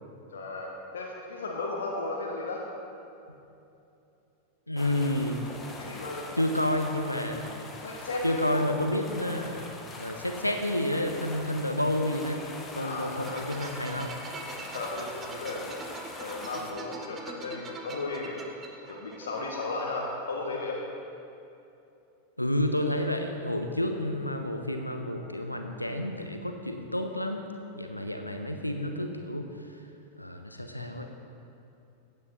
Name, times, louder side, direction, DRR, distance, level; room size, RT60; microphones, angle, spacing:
voice 1, 0.3-2.6 5.8-6.3 7.8-8.6 12.7-13.5 14.2-14.3 14.6-15.8 16.1-18.4 18.9-20.8, left 3 dB, 65° left, -2 dB, 1.4 m, -35 dB
voice 2, 4.7-5.4 6.4-7.7 8.2-14.2 22.4-27.4 27.8-29.5 30.2-31.1, left 1 dB, 85° left, 5 dB, 0.9 m, -30 dB
sound 1, 4.8-16.7, left 2 dB, 15° left, 1.4 m, -43 dB
sound 2, 13.2-19.7, right 3 dB, 25° right, 1.1 m, -43 dB
15.0 x 8.9 x 4.3 m, 2.7 s
figure-of-eight pair, 90°, 0 cm